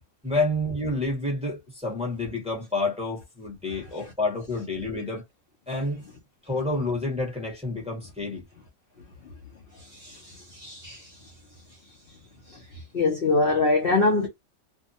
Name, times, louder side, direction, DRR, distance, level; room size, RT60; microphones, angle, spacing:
voice 1, 0.2-5.2 5.7-6.0 6.4-8.5, left 2 dB, 5° right, 1.0 m, -29 dB
voice 2, 9.9-11.2 12.5-12.6 12.9-14.3, left 3 dB, 55° left, 0.7 m, -24 dB
2.6 x 2.2 x 2.7 m
omnidirectional pair, 1.5 m